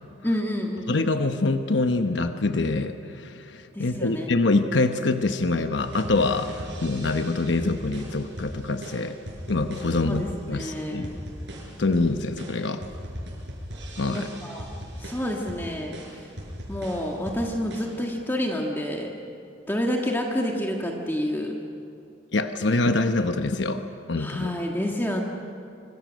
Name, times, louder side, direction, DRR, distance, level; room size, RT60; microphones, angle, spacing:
voice 1, 0.2-1.0 3.7-4.3 10.0-11.1 14.1-14.7 15.0-15.9 16.7-19.1 19.7-21.5 24.2-25.2, equal, 10° left, 0 dB, 1.6 m, -28 dB
voice 2, 0.9-6.5 6.8-9.2 9.5-10.2 10.5-11.1 11.8-12.8 14.0-14.3 22.3-23.8 24.1-24.5, left 2 dB, 70° left, 7 dB, 1.0 m, -25 dB
sound 1, 5.8-17.8, equal, 65° right, 7.3 m, -39 dB
25.5 x 25.0 x 6.4 m, 2.5 s
head